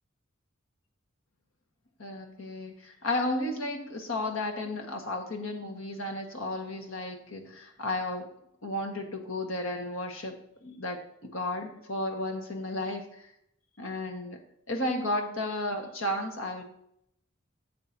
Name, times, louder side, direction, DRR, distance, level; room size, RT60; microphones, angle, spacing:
voice 1, 2.0-8.3 8.6-13.2 13.8-14.4 14.7-16.6, left 1 dB, 85° left, 3 dB, 1.5 m, -33 dB
12.0 x 7.3 x 2.8 m, 0.73 s
head